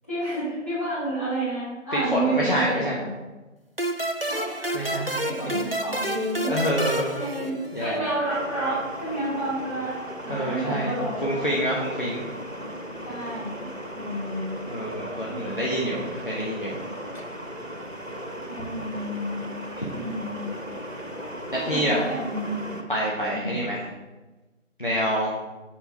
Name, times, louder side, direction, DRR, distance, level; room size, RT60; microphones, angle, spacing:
voice 1, 0.1-3.2 4.3-6.6 7.1-9.9 10.2-11.6 13.0-14.6 18.5-19.4 19.9-20.5 21.5-22.5 23.3-23.5, right 1 dB, 10° left, -15 dB, 2.4 m, -30 dB
voice 2, 2.1-3.0 4.7-5.3 6.4-8.1 10.3-12.3 14.7-16.7 18.6-18.7 19.8-19.9 21.5-22.0 22.9-23.8 24.8-25.3, equal, 40° left, -5 dB, 1.1 m, -27 dB
sound 1, 3.8-8.1, right 1 dB, 50° right, 0.4 m, -30 dB
sound 2, 8.3-22.8, equal, 90° right, 1.6 m, -37 dB
7.4 x 5.2 x 4.1 m, 1.1 s
figure-of-eight pair, 170°, 38 cm